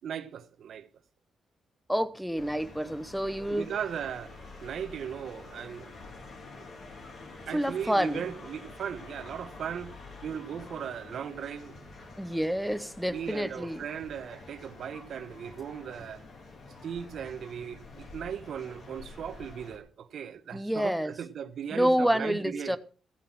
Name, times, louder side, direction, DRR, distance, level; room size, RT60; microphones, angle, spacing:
voice 1, 0.0-0.9 3.5-4.3 4.6-5.9 6.6-6.7 7.5-10.0 10.2-11.8 13.1-16.2 16.8-22.8, right 8 dB, 60° right, 1.0 m, -37 dB
voice 2, 1.9-3.7 7.5-8.2 12.2-13.8 20.5-21.1 21.7-22.8, equal, ahead, 0.7 m, -28 dB
sound 1, 2.4-19.8, left 3 dB, 45° left, 2.9 m, -48 dB
15.0 x 7.4 x 5.9 m
cardioid pair, 145°, 0 cm